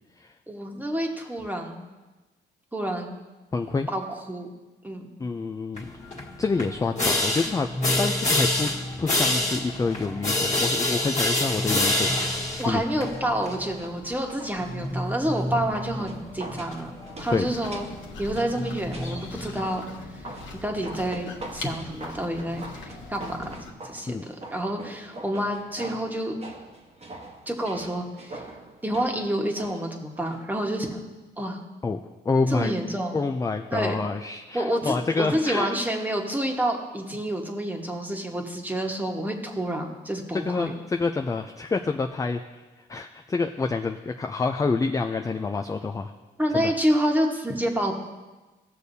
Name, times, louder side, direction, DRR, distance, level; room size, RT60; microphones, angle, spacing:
voice 1, 0.5-1.9 2.7-3.2 3.9-4.5 4.8-5.1 12.6-16.9 17.2-17.9 18.2-19.9 20.1-20.3 20.6-23.5 23.8-26.4 27.5-28.4 28.8-31.0 31.4-31.6 32.5-33.2 33.7-33.9 34.5-40.7 46.4-48.0, right 1 dB, 10° right, 2 dB, 1.4 m, -28 dB
voice 2, 3.5-3.9 5.2-5.9 6.4-7.7 8.0-8.7 9.0-12.8 17.3-17.5 24.1-24.2 31.8-32.0 32.2-32.7 33.1-35.8 40.4-42.6 42.9-46.1 46.5-46.7, left 4 dB, 15° left, 5 dB, 0.4 m, -27 dB
sound 1, 5.7-19.7, left 1 dB, 35° left, 1.6 m, -28 dB
sound 2, 11.6-30.4 30.7-30.8, right 2 dB, 35° right, 1.2 m, -44 dB
sound 3, 17.2-23.7, left 3 dB, 75° left, 1.2 m, -42 dB
17.0 x 6.5 x 2.7 m, 1.2 s
cardioid pair, 90°, 20 cm